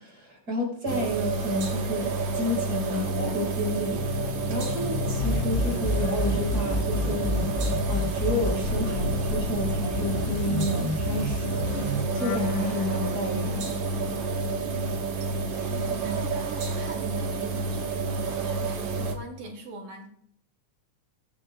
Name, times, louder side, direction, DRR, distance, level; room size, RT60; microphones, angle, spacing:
voice 1, 0.0-7.5 7.9-11.7 12.1-14.0, left 2 dB, 30° right, 0 dB, 5.4 m, -31 dB
sound 1, 0.9-19.1, right 4 dB, 60° right, 2.4 m, -29 dB
sound 2, 3.7-16.0 16.3-18.4 18.7-19.0, left 14 dB, 90° left, 1.1 m, -39 dB
sound 3, 5.2-12.0, left 1 dB, 65° left, 0.6 m, -29 dB
voice 2, 15.7-20.1, right 2 dB, 85° right, 2 dB, 3.9 m, -42 dB
22.5 x 10.5 x 2.4 m, 0.66 s
omnidirectional pair, 3.3 m